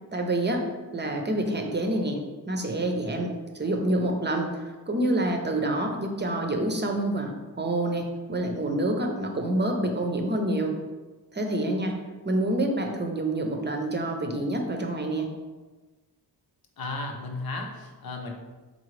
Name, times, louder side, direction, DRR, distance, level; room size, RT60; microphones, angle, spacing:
voice 1, 0.1-0.7 0.9-2.2 2.5-10.7 11.3-12.0 12.2-15.3, right 1 dB, 25° right, 3 dB, 0.7 m, -27 dB
voice 2, 16.8-18.3, left 2 dB, 60° left, 2 dB, 0.8 m, -34 dB
3.9 x 3.8 x 3.2 m, 1.2 s
cardioid pair, 75°, 42 cm